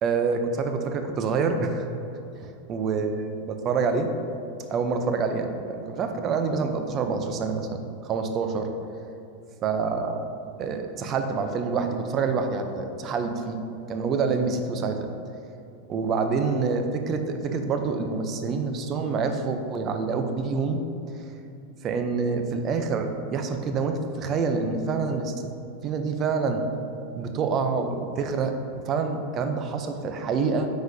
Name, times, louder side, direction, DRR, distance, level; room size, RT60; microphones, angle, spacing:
voice 1, 0.0-1.8 2.4-4.1 4.7-8.7 9.6-10.3 10.6-13.6 13.9-15.0 15.9-20.8 21.8-25.3 25.8-26.6 27.2-28.5 28.8-30.7, right 5 dB, 25° right, 6 dB, 0.5 m, -27 dB
9.5 x 4.0 x 2.6 m, 2.7 s
supercardioid pair, 160°, 0 cm